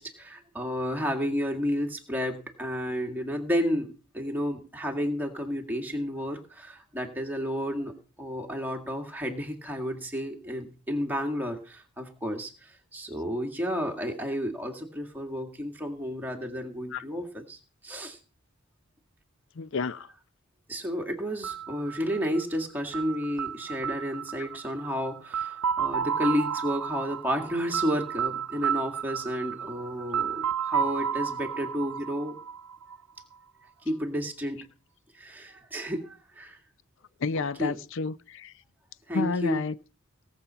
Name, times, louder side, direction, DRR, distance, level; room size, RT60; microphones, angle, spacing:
voice 1, 0.0-7.9 8.2-17.6 17.8-18.2 20.7-32.4 33.8-34.6 35.2-36.6 37.3-37.8 39.1-39.7, equal, 10° right, 2.0 m, -31 dB
voice 2, 19.6-20.1 37.2-38.5 39.1-39.8, left 4 dB, 60° left, 0.6 m, -30 dB
sound 1, 21.4-33.2, right 7 dB, 80° right, 0.7 m, -32 dB
18.5 x 7.4 x 5.6 m
head